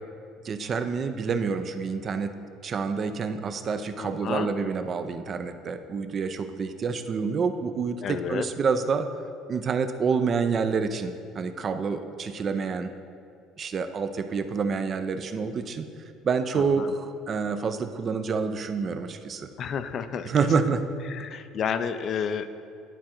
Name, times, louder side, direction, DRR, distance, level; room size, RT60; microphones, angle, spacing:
voice 1, 0.4-2.3 2.6-9.1 9.5-12.9 13.6-15.9 16.2-19.5 20.3-20.8, right 5 dB, 40° right, 9 dB, 0.4 m, -28 dB
voice 2, 4.0-4.5 8.0-8.5 16.5-16.9 19.6-20.3 21.1-22.5, left 7 dB, 50° left, 11 dB, 0.4 m, -31 dB
10.0 x 3.7 x 4.3 m, 2.5 s
supercardioid pair, 105°, 0 cm